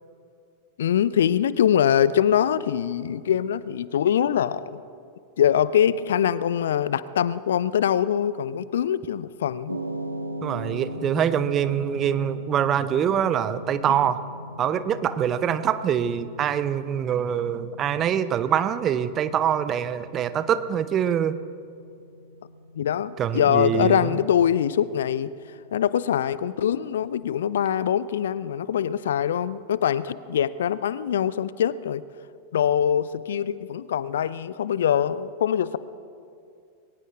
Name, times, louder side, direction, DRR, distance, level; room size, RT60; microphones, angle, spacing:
voice 1, 0.8-4.8 5.4-9.8 22.8-25.3 25.7-32.0 32.5-35.8, left 9 dB, 60° left, 18 dB, 0.4 m, -23 dB
sound 1, 9.7-27.9, equal, 85° right, 0.8 m, -40 dB
voice 2, 10.4-14.2 14.6-21.4 23.2-24.2, right 9 dB, 30° right, 14 dB, 0.7 m, -24 dB
21.5 x 18.5 x 3.6 m, 2.4 s
figure-of-eight pair, 90°, 0 cm